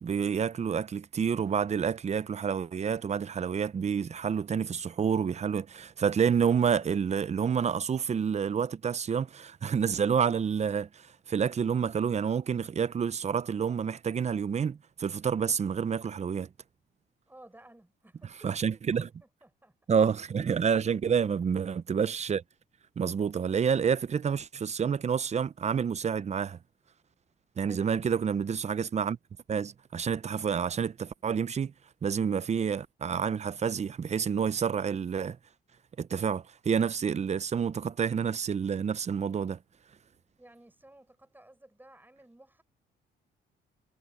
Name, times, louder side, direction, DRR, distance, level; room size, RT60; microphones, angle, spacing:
voice 1, 0.0-16.5 18.4-19.1 19.9-22.4 23.0-26.6 27.6-29.2 29.5-31.7 32.0-35.4 36.0-39.6, right 7 dB, 35° right, 0.6 m, -29 dB
voice 2, 17.3-19.7 20.9-21.1 27.7-28.0 40.4-42.6, right 1 dB, 10° right, 7.7 m, -55 dB
cardioid pair, 90°, 20 cm